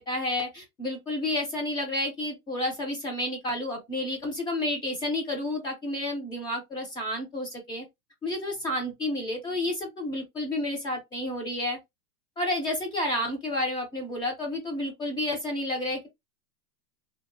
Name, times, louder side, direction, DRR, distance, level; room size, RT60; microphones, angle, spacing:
voice 1, 0.0-7.8 8.2-11.8 12.4-16.1, left 1 dB, 10° left, 0.4 m, -30 dB
2.7 x 2.0 x 2.6 m
hypercardioid pair, 130°, 46 cm